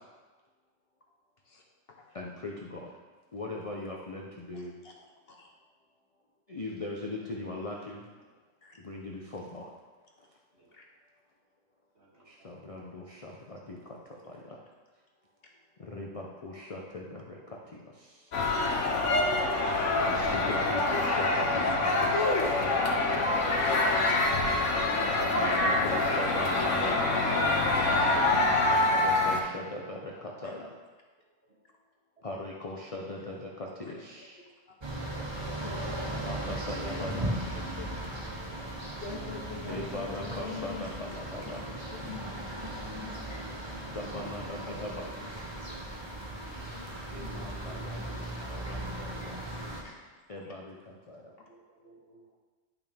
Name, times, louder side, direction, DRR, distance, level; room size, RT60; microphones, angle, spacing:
voice 1, 2.1-2.9 3.3-4.7 6.5-8.1 8.8-9.7 10.2-10.3 12.2-14.6 15.8-18.4 20.1-23.1 25.3-27.4 28.8-30.8 32.2-34.4 36.2-37.4 39.7-41.7 43.8-45.1 47.1-49.9 50.3-51.3, left 2 dB, 35° left, -1 dB, 0.6 m, -40 dB
voice 2, 4.5-4.9 5.3-5.5 8.6-8.8 10.7-10.8 27.5-27.7 30.4-30.5 33.3-33.4 35.0-35.1 35.6-38.1 39.0-40.9 41.4-41.6 41.9-43.8 46.5-46.8 47.1-47.9 48.6-48.8 49.3-49.4 49.8-50.0, left 5 dB, 50° left, 0 dB, 1.1 m, -46 dB
voice 3, 12.0-12.9 13.5-14.2 16.7-17.7 29.6-30.7 32.8-32.9 33.8-34.0 34.8-34.9 36.5-36.6 47.3-48.1 48.4-48.5 51.4-52.2, right 3 dB, 55° right, -8 dB, 2.8 m, -57 dB
sound 1, 18.3-29.4, left 2 dB, 70° left, 1.3 m, -26 dB
sound 2, 34.8-49.8, right 1 dB, 25° right, 1.0 m, -37 dB
11.0 x 5.8 x 3.5 m, 1.3 s
omnidirectional pair, 1.3 m